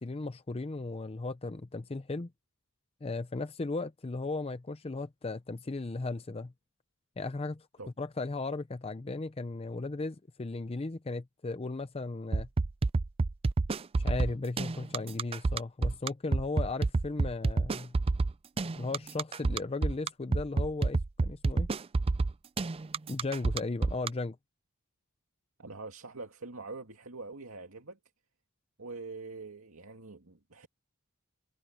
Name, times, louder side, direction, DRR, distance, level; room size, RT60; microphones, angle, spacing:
voice 1, 0.0-2.3 3.0-6.5 7.2-7.7 8.0-12.5 14.0-17.9 18.8-21.7 23.1-24.4, left 3 dB, 25° left, 0.5 m, -36 dB
sound 1, 12.3-24.1, right 3 dB, 25° right, 0.4 m, -28 dB
voice 2, 25.6-28.0 28.8-30.7, right 3 dB, 70° right, 2.5 m, -44 dB
head